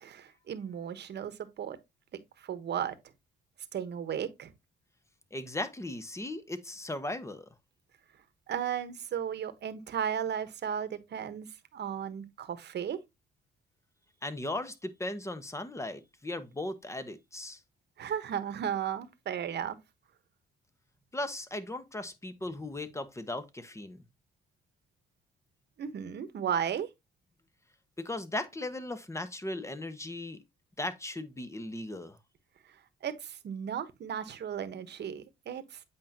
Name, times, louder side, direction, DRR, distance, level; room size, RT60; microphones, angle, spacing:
voice 1, 0.0-1.8 2.4-3.0 3.7-4.5 8.5-11.5 11.7-13.0 18.0-19.8 25.8-26.9 32.7-35.8, right 8 dB, 60° right, 1.2 m, -35 dB
voice 2, 5.3-7.5 14.2-17.6 21.1-24.0 28.0-30.4 30.8-32.2, left 1 dB, 15° left, 1.1 m, -37 dB
8.4 x 5.1 x 2.8 m
cardioid pair, 90°, 20 cm